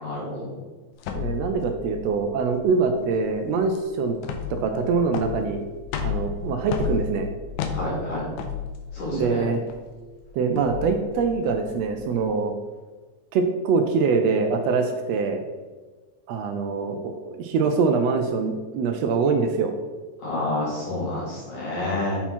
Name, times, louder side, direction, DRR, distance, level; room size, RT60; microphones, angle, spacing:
voice 1, 0.0-0.6 7.7-8.3 8.9-9.5 20.2-22.2, left 1 dB, 50° left, -7 dB, 3.7 m, -29 dB
sound 1, 1.0-12.2, left 7 dB, 85° left, 2.2 m, -33 dB
voice 2, 1.1-4.2 4.5-5.6 6.0-7.3 9.1-9.6 10.3-12.5 13.3-15.4 16.3-19.7, right 4 dB, 75° right, 5 dB, 1.6 m, -24 dB
7.3 x 5.8 x 4.3 m, 1.3 s
omnidirectional pair, 3.4 m